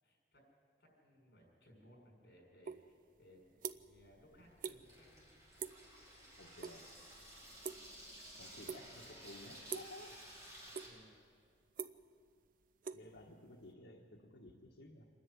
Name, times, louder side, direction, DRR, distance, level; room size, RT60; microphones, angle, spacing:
voice 1, 0.0-0.4 0.8-5.2 10.6-11.1, equal, 65° left, 0 dB, 6.3 m, -64 dB
sound 1, 2.6-2.8 3.2-4.0 4.3-4.8 5.1-5.3 5.6-5.9 6.2-6.8 7.0-8.2 8.6-9.1 9.7-10.0 10.4-11.1 11.4-13.7, right 6 dB, 50° right, 0.5 m, -45 dB
Water tap faucet / Sink (filling or washing), 3.8-10.9, right 1 dB, 20° right, 5.2 m, -55 dB
voice 2, 6.4-7.0 8.4-10.4 12.9-15.1, left 1 dB, 90° left, 0 dB, 1.3 m, -55 dB
26.5 x 10.5 x 9.7 m, 2.2 s
head